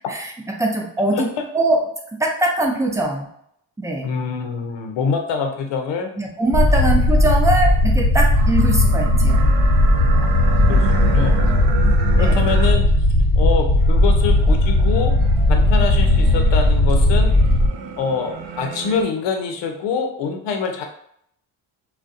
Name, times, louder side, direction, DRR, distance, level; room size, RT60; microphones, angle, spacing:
voice 1, 0.6-1.8 2.2-3.3 3.8-4.1 6.2-9.5 12.1-12.5, right 1 dB, 5° right, 0 dB, 0.5 m, -22 dB
voice 2, 4.0-6.1 6.7-6.9 10.7-11.4 12.2-12.8 13.4-15.1 15.5-17.3 18.0-20.8, left 5 dB, 70° left, 4 dB, 0.7 m, -25 dB
sound 1, 6.5-17.7, left 1 dB, 30° left, 1.3 m, -16 dB
sound 2, 8.3-19.0, right 6 dB, 85° right, 0.5 m, -32 dB
2.3 x 2.1 x 2.6 m, 0.70 s
supercardioid pair, 65°, 45 cm